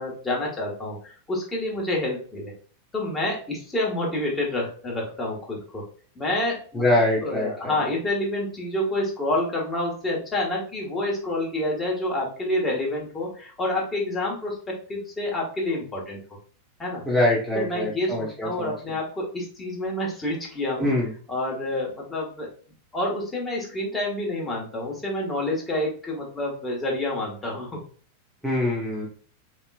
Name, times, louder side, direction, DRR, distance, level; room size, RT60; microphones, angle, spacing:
voice 1, 0.0-2.5 2.9-5.8 6.1-6.8 7.2-16.2 16.8-17.0 17.5-20.9 21.3-22.5 22.9-27.8, left 1 dB, 15° left, -3 dB, 1.3 m, -28 dB
voice 2, 6.7-7.7 17.1-18.7 20.8-21.1 28.4-29.0, left 1 dB, ahead, -6 dB, 0.9 m, -24 dB
3.7 x 2.9 x 2.3 m, 0.43 s
figure-of-eight pair, 90°, 0 cm